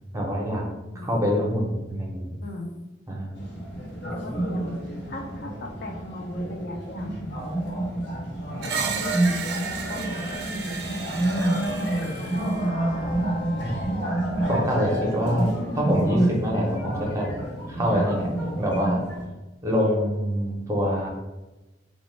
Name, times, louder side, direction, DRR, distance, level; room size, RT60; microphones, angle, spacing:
voice 1, 0.1-0.6 1.0-2.3 3.1-3.5 13.6-14.0 14.5-17.3 17.7-18.3 18.6-19.0 19.6-21.1, equal, 15° right, -2 dB, 0.6 m, -25 dB
voice 2, 0.9-1.3 2.4-2.8 4.1-4.8 5.1-7.3 8.9-12.9, left 2 dB, 55° left, 2 dB, 0.4 m, -38 dB
sound 1, 3.3-19.2, right 1 dB, 90° left, 1.0 m, -28 dB
Screech, 8.6-12.6, right 6 dB, 60° right, 0.4 m, -34 dB
sound 2, 10.0-14.2, left 2 dB, 70° left, 1.1 m, -45 dB
3.0 x 2.1 x 3.1 m, 1.1 s
head